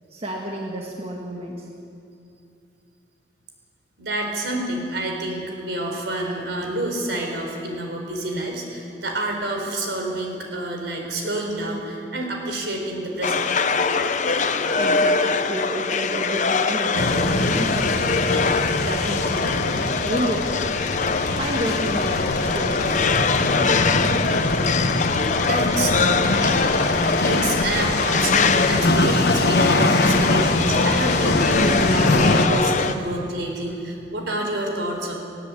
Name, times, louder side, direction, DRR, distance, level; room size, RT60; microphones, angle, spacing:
voice 1, 0.1-1.7 14.8-18.3 18.8-19.7 20.0-20.7 21.4-23.0, right 1 dB, 35° right, -1 dB, 1.8 m, -30 dB
voice 2, 4.0-13.5 25.4-25.9 26.3-35.1, right 1 dB, 70° right, 2 dB, 4.3 m, -28 dB
sound 1, 13.2-32.9, left 4 dB, 40° left, 0.8 m, -23 dB
sound 2, 16.9-32.5, left 2 dB, 60° left, 1.3 m, -23 dB
19.5 x 17.5 x 8.5 m, 2.5 s
head